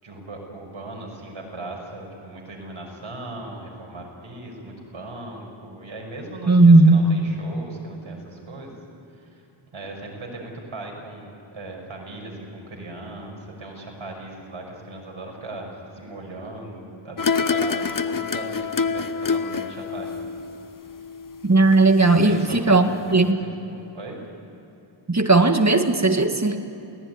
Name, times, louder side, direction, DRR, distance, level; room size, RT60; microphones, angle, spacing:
voice 1, 0.0-8.8 9.1-9.4 9.7-20.3 22.0-23.3 23.7-24.2, right 2 dB, 70° right, 0 dB, 6.1 m, -38 dB
voice 2, 6.5-7.0 21.4-23.4 25.1-26.6, right 2 dB, 35° right, 6 dB, 1.8 m, -16 dB
sound 1, 17.2-22.3 22.5-22.6, left 5 dB, 40° left, 0.9 m, -27 dB
29.0 x 18.0 x 9.6 m, 2.9 s
wide cardioid pair, 70°, 50 cm